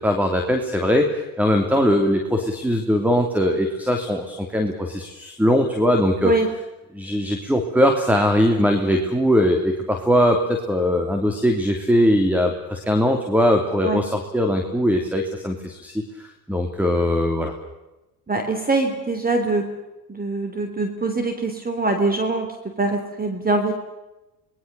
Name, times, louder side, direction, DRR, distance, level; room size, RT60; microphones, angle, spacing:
voice 1, 0.0-6.3 6.9-17.5, equal, 5° right, 5 dB, 3.0 m, -20 dB
voice 2, 18.3-19.7 20.1-23.7, right 3 dB, 20° right, 6 dB, 3.5 m, -23 dB
26.0 x 20.5 x 6.9 m, 1.0 s
supercardioid pair, 85°, 45 cm